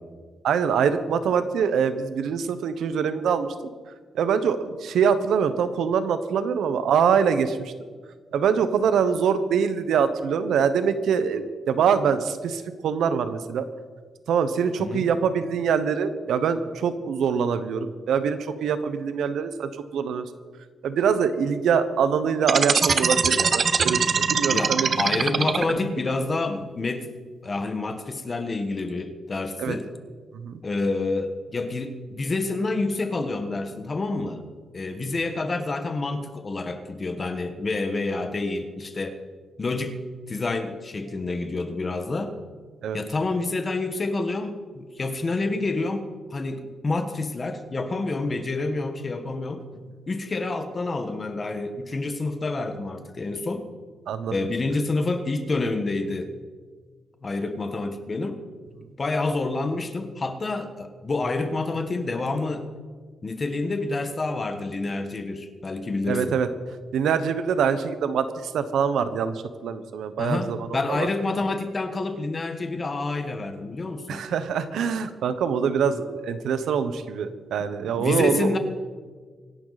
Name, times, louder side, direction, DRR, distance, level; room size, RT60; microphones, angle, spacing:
voice 1, 0.4-3.5 4.1-7.7 8.3-13.6 14.3-20.2 20.8-24.9 29.6-29.8 30.3-30.6 42.8-43.0 54.1-54.3 66.1-66.5 66.9-71.1 74.1-78.5, right 7 dB, 85° right, 11 dB, 1.1 m, -24 dB
sound 1, 22.4-26.0, right 5 dB, 40° right, 0.8 m, -22 dB
voice 2, 24.5-27.1 27.4-29.9 30.6-34.4 34.7-39.2 39.6-40.0 40.3-42.3 42.9-49.6 50.1-53.7 54.3-56.3 57.2-58.4 59.0-62.7 63.2-66.4 70.2-74.2 77.6-78.6, left 3 dB, 30° left, 7 dB, 1.4 m, -28 dB
25.0 x 11.5 x 4.2 m, 1.6 s
wide cardioid pair, 145°, 0 cm